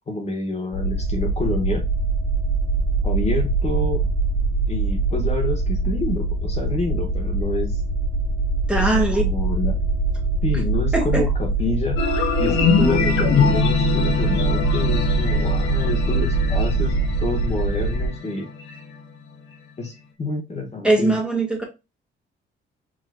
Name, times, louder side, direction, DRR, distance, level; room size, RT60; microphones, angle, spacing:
voice 1, 0.1-1.8 3.0-4.0 4.7-7.8 8.8-9.7 10.4-12.0 12.4-18.5 19.8-21.2, left 2 dB, 35° left, 1.2 m, -28 dB
sound 1, 0.7-18.1, right 3 dB, 15° left, 1.0 m, -23 dB
voice 2, 8.7-9.2 10.9-11.2 20.8-21.6, right 2 dB, 5° right, 1.4 m, -20 dB
sound 2, 12.0-19.0, left 5 dB, 85° left, 1.1 m, -23 dB
4.9 x 3.0 x 2.2 m
cardioid pair, 90°, 20 cm